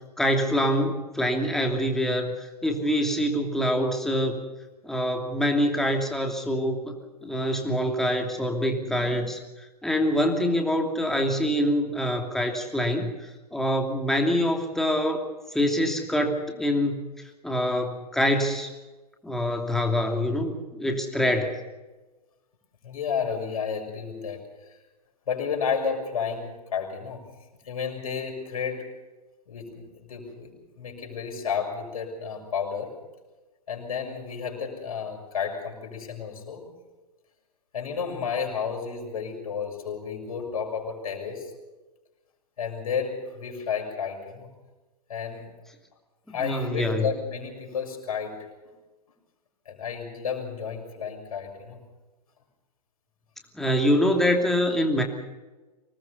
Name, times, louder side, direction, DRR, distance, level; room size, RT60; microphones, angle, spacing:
voice 1, 0.2-4.4 4.8-6.9 7.2-15.2 15.5-17.0 17.4-18.7 19.2-21.6 46.4-47.1 53.5-55.0, equal, ahead, 2 dB, 2.8 m, -25 dB
voice 2, 22.8-24.5 25.3-27.3 27.7-28.9 29.5-32.9 33.7-36.6 37.7-41.5 42.6-44.5 45.1-45.5 46.3-48.5 49.6-51.8, left 6 dB, 60° left, 1 dB, 6.7 m, -32 dB
25.5 x 19.5 x 5.5 m, 1.2 s
figure-of-eight pair, 110°, 20 cm